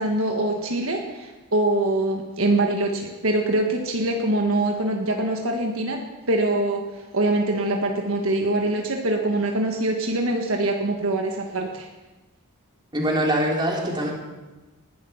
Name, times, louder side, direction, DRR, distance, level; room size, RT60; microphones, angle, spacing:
voice 1, 0.0-6.0 6.3-6.8 7.1-11.9, right 2 dB, 65° right, 2 dB, 1.6 m, -24 dB
voice 2, 12.9-14.1, right 1 dB, 20° right, -2 dB, 3.5 m, -23 dB
20.0 x 12.0 x 5.7 m, 1.1 s
head